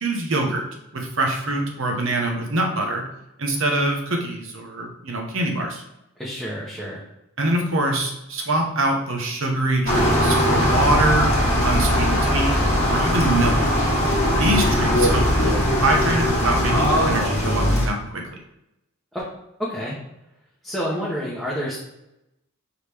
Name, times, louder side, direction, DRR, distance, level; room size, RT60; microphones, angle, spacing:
voice 1, 0.0-0.6 0.9-3.0 3.4-5.8 7.4-11.3 11.6-12.6 12.9-13.6 14.4-18.2, right 2 dB, 60° right, 2 dB, 0.9 m, -24 dB
voice 2, 6.2-7.0 19.1-19.3 19.7-20.0 20.6-21.8, equal, ahead, -8 dB, 0.8 m, -29 dB
sound 1, 9.9-17.9, equal, 30° left, 1.3 m, -20 dB
4.8 x 3.2 x 3.4 m, 0.88 s
head